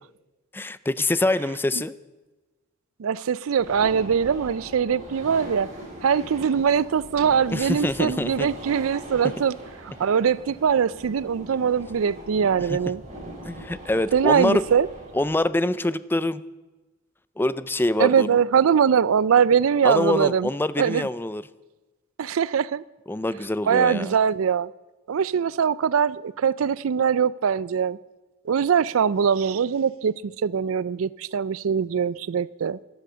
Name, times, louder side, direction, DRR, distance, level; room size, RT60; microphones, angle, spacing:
voice 1, 0.5-1.9 7.5-8.5 12.7-12.8 13.4-14.6 15.1-16.4 17.4-18.3 19.8-21.4 23.1-24.1, left 1 dB, 10° left, 0.4 m, -25 dB
voice 2, 3.0-5.7 6.0-9.6 10.0-13.0 14.1-14.9 18.0-20.5 20.8-21.1 22.2-22.8 23.7-24.7 25.1-28.0 28.5-32.8, right 7 dB, 80° right, 0.4 m, -22 dB
sound 1, 3.6-15.3, right 1 dB, 35° right, 6.9 m, -41 dB
14.5 x 12.0 x 6.8 m
head